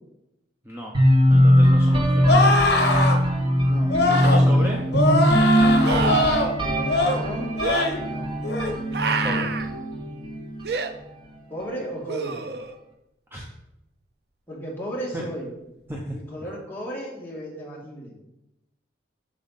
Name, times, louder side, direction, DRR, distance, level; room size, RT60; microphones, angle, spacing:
voice 1, 0.6-1.0 1.3-2.6 4.2-4.8 9.2-9.5 13.3-13.5 15.1-15.2 15.9-16.2, equal, 10° right, -2 dB, 0.7 m, -33 dB
sound 1, 0.9-10.8, equal, 25° right, 1.3 m, -20 dB
sound 2, 2.2-3.2 3.9-4.4 4.9-6.5 6.9-7.2 7.6-8.0 8.4-8.7, left 2 dB, 65° left, 1.2 m, -21 dB
voice 2, 3.6-4.8 6.6-7.5 8.0-8.3 11.5-12.4 14.5-15.5 16.1-18.1, equal, 10° left, -5 dB, 2.1 m, -34 dB
sound 3, 4.2-4.3 5.8-6.5 7.6-7.9 8.9-9.7 10.6-10.9 12.1-12.8 15.9-16.0, right 5 dB, 60° right, 0.6 m, -27 dB
7.2 x 6.8 x 4.1 m, 0.88 s
head